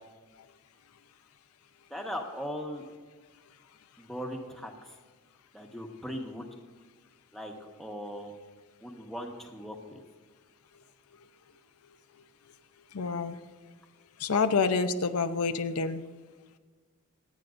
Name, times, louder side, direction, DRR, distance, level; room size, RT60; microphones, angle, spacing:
voice 1, 1.9-2.8 4.0-4.9 5.5-6.5 7.3-7.5 7.8-8.3 8.8-10.0, equal, ahead, 0 dB, 1.2 m, -39 dB
voice 2, 12.9-13.4 14.2-16.0, left 4 dB, 80° left, 8 dB, 0.6 m, -27 dB
26.5 x 9.2 x 2.6 m, 1.4 s
head